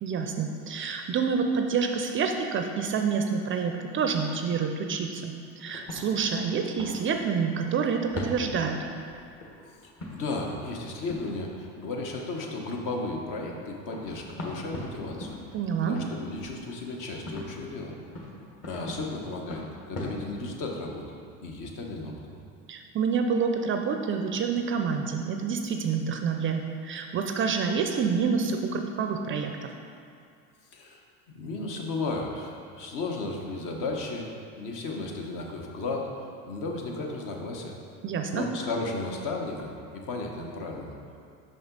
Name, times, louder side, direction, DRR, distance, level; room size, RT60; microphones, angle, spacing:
voice 1, 0.0-8.8 15.5-16.0 22.7-29.7 38.0-38.5, right 5 dB, 35° right, 5 dB, 0.4 m, -28 dB
sound 1, 3.5-4.4 5.6-7.8 8.1-20.9, left 1 dB, 40° left, 1.4 m, -42 dB
voice 2, 9.8-15.4 15.8-17.9 18.7-21.0 21.4-22.4 30.7-31.0 31.3-34.3 34.6-36.1 36.4-37.7 38.3-41.0, left 3 dB, 55° left, 0 dB, 1.1 m, -34 dB
5.6 x 5.3 x 3.9 m, 2.3 s
hypercardioid pair, 90°, 38 cm